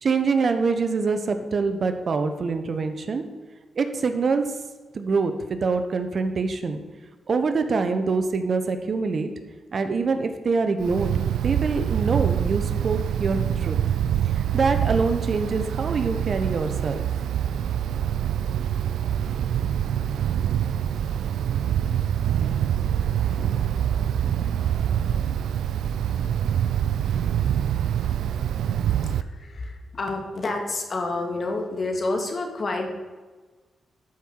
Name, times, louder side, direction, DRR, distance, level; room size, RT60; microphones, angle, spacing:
voice 1, 0.0-3.2 3.7-4.5 4.9-6.8 7.3-9.3 9.7-11.1 11.4-13.8 14.4-17.0, right 4 dB, 55° right, 8 dB, 0.9 m, -25 dB
Wind, 10.8-29.2, right 9 dB, 90° right, 0.4 m, -25 dB
voice 2, 29.1-32.9, left 2 dB, 50° left, 3 dB, 1.8 m, -29 dB
12.0 x 5.6 x 4.6 m, 1.4 s
cardioid pair, 70°, 0 cm